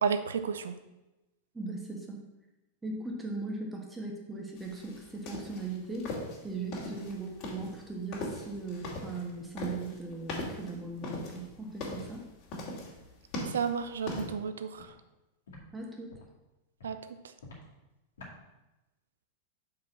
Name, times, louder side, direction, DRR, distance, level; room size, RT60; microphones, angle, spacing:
voice 1, 0.0-0.8 13.5-14.9 16.8-17.0, right 6 dB, 65° right, 10 dB, 0.6 m, -32 dB
voice 2, 1.5-2.2 2.8-6.1 6.4-12.2 15.7-16.2, right 3 dB, 10° right, 1 dB, 1.5 m, -38 dB
sound 1, 4.6-14.2, left 2 dB, 40° left, 2.7 m, -40 dB
Walk footsteps, 13.5-13.6 14.1-14.3 14.8-14.9 15.5-15.6 16.1-16.3 16.8-17.0 17.4-17.6 18.2-18.3, left 2 dB, 65° left, 2.3 m, -49 dB
6.1 x 4.9 x 5.8 m, 1.0 s
figure-of-eight pair, 90°, 0 cm